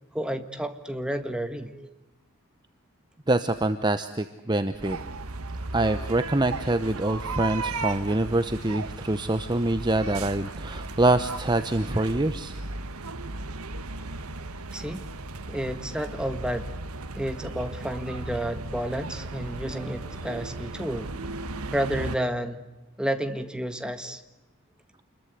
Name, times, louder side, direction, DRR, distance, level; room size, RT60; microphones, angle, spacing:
voice 1, 0.1-1.9 14.1-14.2 14.7-15.0 15.5-16.7 17.1-21.1 21.7-22.6 23.0-24.2, right 1 dB, 5° right, 1.6 m, -31 dB
voice 2, 3.3-5.0 5.7-12.6, right 2 dB, 20° right, 0.9 m, -25 dB
sound 1, 4.8-22.2, right 3 dB, 85° right, 1.4 m, -36 dB
28.5 x 22.0 x 8.2 m
head